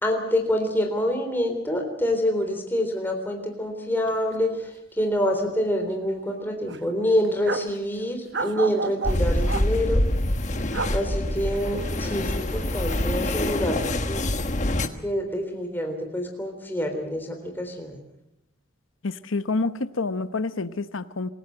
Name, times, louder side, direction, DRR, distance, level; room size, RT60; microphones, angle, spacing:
voice 1, 0.0-4.7 5.0-10.0 10.9-13.8 14.1-14.3 15.0-18.0, equal, 10° left, 3 dB, 3.6 m, -26 dB
sound 1, 4.0-4.2 4.4-4.6 5.0-5.7 6.0-6.1 6.7-7.8 8.3-9.7 10.5-10.9 11.4-13.3 13.6-14.4, right 4 dB, 60° right, 1.1 m, -34 dB
sound 2, 9.0-14.9, left 1 dB, 35° left, 1.3 m, -25 dB
voice 2, 19.0-21.3, left 3 dB, 80° left, 12 dB, 0.9 m, -28 dB
26.5 x 15.5 x 7.8 m, 0.87 s
head